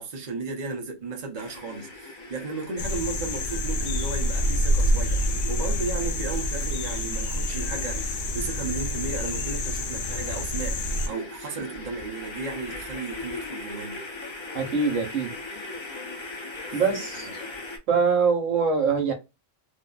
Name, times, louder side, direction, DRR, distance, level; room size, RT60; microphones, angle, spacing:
voice 1, 0.0-14.0 16.7-16.8 17.2-17.3, right 4 dB, 40° right, 0.7 m, -34 dB
sound 1, 1.3-17.8, left 3 dB, 35° left, 0.4 m, -40 dB
sound 2, 2.8-11.1, equal, 70° left, 0.9 m, -27 dB
voice 2, 14.5-15.3 16.7-17.3 17.9-19.1, right 5 dB, 75° right, 1.3 m, -23 dB
2.6 x 2.4 x 2.3 m
omnidirectional pair, 1.4 m